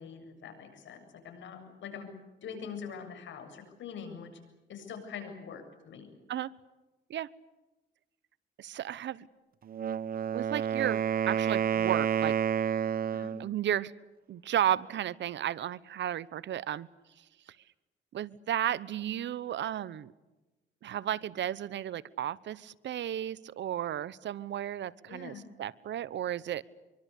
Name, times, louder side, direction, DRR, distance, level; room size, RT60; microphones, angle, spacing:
voice 1, 0.0-2.1 2.4-4.3 4.7-6.1 13.1-13.3 25.1-25.4, left 6 dB, 70° left, 7 dB, 7.3 m, -44 dB
voice 2, 8.6-9.3 10.3-12.4 13.4-13.9 14.3-16.9 18.1-20.1 20.8-26.6, right 11 dB, 65° right, 19 dB, 1.0 m, -33 dB
Wind instrument woodwind instrument, 9.7-13.5, right 8 dB, 50° right, 0.8 m, -29 dB
25.0 x 24.0 x 8.4 m, 1.1 s
cardioid pair, 90°, 20 cm